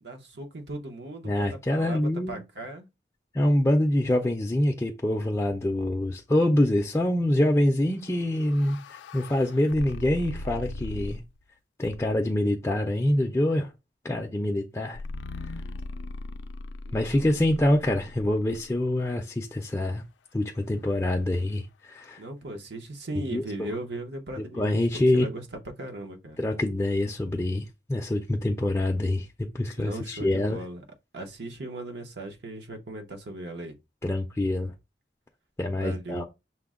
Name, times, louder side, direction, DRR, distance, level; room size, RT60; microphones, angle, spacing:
voice 1, 0.0-2.9 16.9-17.7 22.2-25.4 25.8-26.4 29.8-30.8 31.1-33.7 35.8-36.2, right 2 dB, 75° right, 0.8 m, -38 dB
voice 2, 1.2-2.4 3.3-11.2 11.8-13.7 14.0-15.0 16.9-20.0 20.3-22.2 23.2-23.7 24.5-25.3 26.4-29.3 29.5-30.6 34.0-34.7 35.6-36.2, left 1 dB, 15° left, 0.4 m, -25 dB
sound 1, 8.0-11.4 11.8-12.4 14.9-19.0, left 2 dB, 85° left, 0.3 m, -39 dB
5.8 x 2.1 x 3.6 m
head